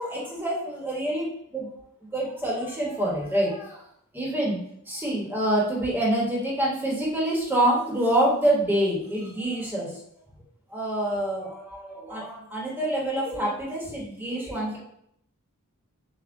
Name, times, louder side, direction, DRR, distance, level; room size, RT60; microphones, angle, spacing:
voice 1, 0.0-1.7 2.1-3.8 4.1-4.6 4.9-10.0 10.7-14.8, right 1 dB, 10° right, -4 dB, 1.1 m, -26 dB
6.9 x 2.3 x 2.5 m, 0.72 s
head